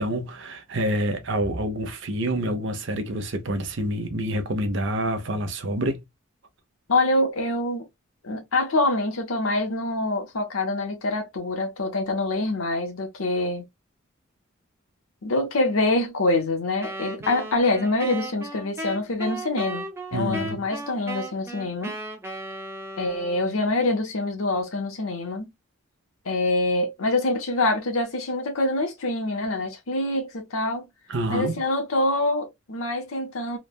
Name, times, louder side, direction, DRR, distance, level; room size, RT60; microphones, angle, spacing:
voice 1, 0.0-6.0 20.1-20.6 31.1-31.6, right 1 dB, 60° right, 0.7 m, -27 dB
voice 2, 6.9-7.9 8.2-13.7 15.2-21.9 23.0-25.5 26.2-30.9 31.3-33.6, left 2 dB, 85° left, 0.9 m, -25 dB
Wind instrument woodwind instrument, 16.8-23.6, right 1 dB, 10° right, 0.5 m, -36 dB
3.2 x 2.1 x 2.3 m
head